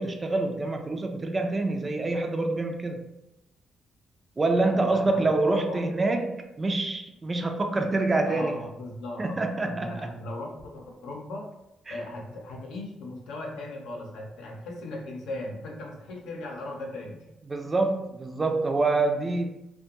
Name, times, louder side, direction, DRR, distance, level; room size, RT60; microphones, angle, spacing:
voice 1, 0.0-3.0 4.4-8.6 9.2-10.1 11.9-12.0 17.5-19.5, right 2 dB, 25° right, 5 dB, 0.4 m, -26 dB
voice 2, 4.6-5.8 8.3-9.4 9.7-11.5 11.9-17.3 17.6-17.7, left 2 dB, 90° left, -1 dB, 0.6 m, -38 dB
2.5 x 2.2 x 2.8 m, 0.91 s
cardioid pair, 90°, 0 cm